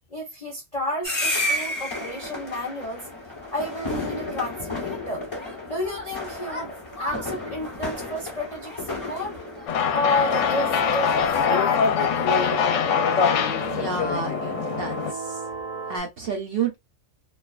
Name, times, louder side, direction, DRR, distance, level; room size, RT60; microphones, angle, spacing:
voice 1, 0.1-3.1 3.5-5.3 5.6-6.7 7.0-9.4 9.9-11.1 11.5-12.7, left 1 dB, 50° left, 0.4 m, -31 dB
sound 1, 1.0-11.5, left 1 dB, 30° left, 0.9 m, -32 dB
sound 2, 7.7-7.8 8.6-16.0, right 4 dB, 80° right, 1.0 m, -38 dB
sound 3, 9.7-15.1, left 6 dB, 70° left, 0.8 m, -23 dB
voice 2, 13.7-15.5 15.9-16.8, right 5 dB, 60° right, 0.7 m, -30 dB
2.4 x 2.2 x 2.4 m
omnidirectional pair, 1.4 m